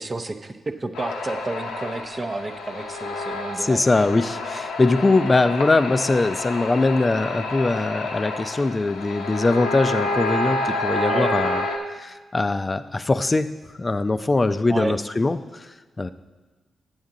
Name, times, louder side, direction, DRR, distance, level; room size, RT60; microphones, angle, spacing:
voice 1, 0.0-4.0 11.1-11.3 14.7-14.9, right 2 dB, 35° right, 8 dB, 0.7 m, -30 dB
sound 1, 1.0-11.8, left 2 dB, 90° left, 0.8 m, -29 dB
voice 2, 3.6-11.6 12.0-13.5 13.8-16.1, left 3 dB, 35° left, 12 dB, 0.5 m, -22 dB
9.3 x 7.2 x 3.8 m, 1.2 s
supercardioid pair, 45°, 0 cm